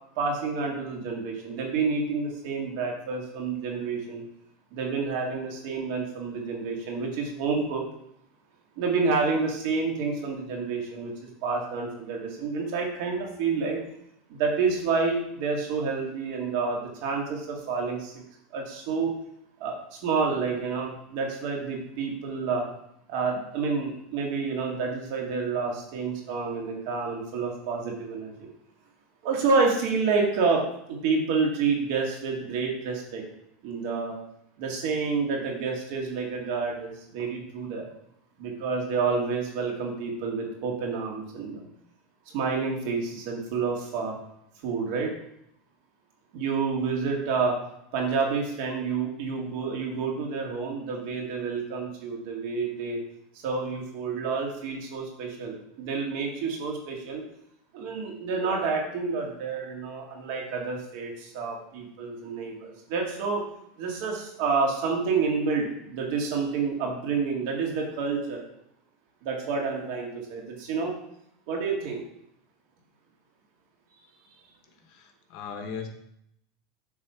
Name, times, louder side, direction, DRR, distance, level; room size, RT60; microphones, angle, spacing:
voice 1, 0.2-4.2 4.7-7.8 8.8-11.1 11.4-13.8 14.3-18.1 18.5-19.1 19.6-19.7 20.0-22.6 23.1-28.5 29.2-30.6 30.9-33.2 33.6-34.2 34.6-37.8 38.4-41.6 42.3-44.1 44.6-45.1 46.3-47.5 47.9-53.0 53.4-57.2 57.7-63.4 63.8-68.4 69.2-70.9 71.5-72.0, right 4 dB, 65° right, 0 dB, 2.0 m, -29 dB
voice 2, 74.9-75.9, left 6 dB, 55° left, 6 dB, 1.1 m, -38 dB
7.4 x 3.4 x 5.7 m, 0.75 s
supercardioid pair, 130°, 0 cm